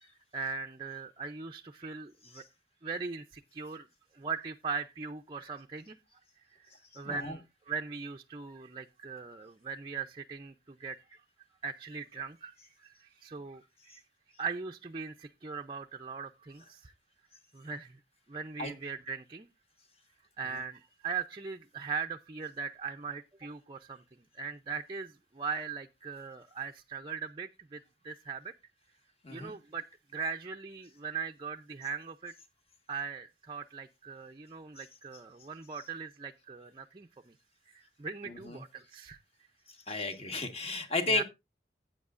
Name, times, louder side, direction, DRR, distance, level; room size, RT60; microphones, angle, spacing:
voice 1, 0.0-2.4 2.8-3.9 4.1-6.0 6.5-11.2 11.6-14.0 14.4-16.9 17.5-18.0 18.3-19.5 20.4-24.0 24.3-28.5 29.3-29.8 30.1-32.3 32.9-37.3 37.7-39.2 41.1-41.2, right 5 dB, 30° right, 0.5 m, -40 dB
voice 2, 7.0-7.4 18.6-18.7 29.2-29.5 34.8-34.9 38.3-38.6 39.9-41.2, left 3 dB, 35° left, 1.5 m, -33 dB
15.0 x 8.8 x 2.5 m
head